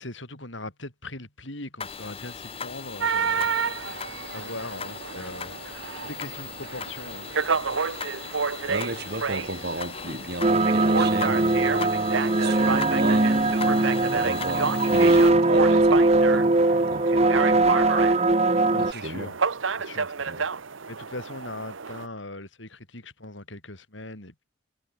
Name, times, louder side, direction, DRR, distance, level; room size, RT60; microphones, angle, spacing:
voice 1, 0.0-3.5 4.3-5.6 6.0-7.3 18.7-19.4 19.8-20.5 20.9-24.4, left 2 dB, 70° left, 7.4 m, -39 dB
sound 1, 1.8-15.3, left 5 dB, 30° left, 2.5 m, -39 dB
sound 2, 3.0-22.1, right 5 dB, 85° right, 1.1 m, -31 dB
voice 2, 8.7-11.8 12.4-13.8 14.1-17.4 18.8-19.3 20.3-20.4, right 2 dB, 55° right, 6.2 m, -34 dB
sound 3, 10.4-18.9, right 2 dB, 30° right, 0.9 m, -21 dB
head